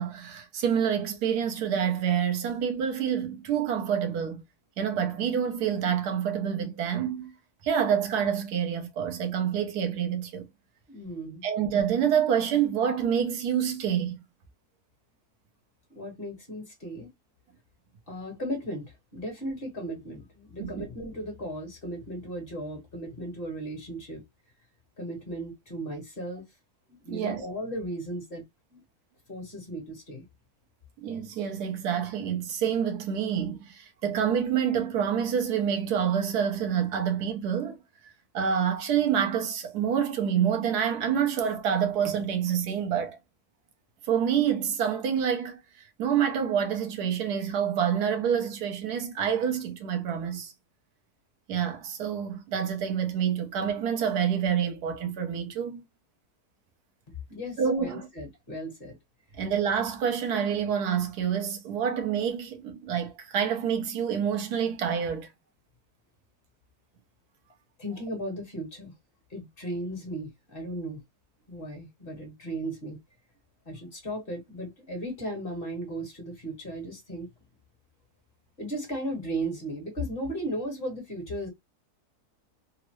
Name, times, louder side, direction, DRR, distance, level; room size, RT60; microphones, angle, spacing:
voice 1, 0.0-4.4 4.8-7.3 7.6-10.5 11.4-14.2 20.6-20.9 27.1-27.4 31.0-37.8 38.0-43.2 44.0-50.5 51.5-55.8 57.6-58.1 59.4-65.3, right 8 dB, 80° right, 1.3 m, -27 dB
voice 2, 10.9-11.5 15.9-17.1 18.1-24.2 25.0-26.4 26.9-28.4 28.7-28.8 29.3-30.2 57.1-59.0 67.8-68.9 69.3-71.0 71.5-73.0 73.6-77.3 78.6-81.5, right 1 dB, 40° left, 1.3 m, -36 dB
3.6 x 2.0 x 3.0 m
omnidirectional pair, 1.7 m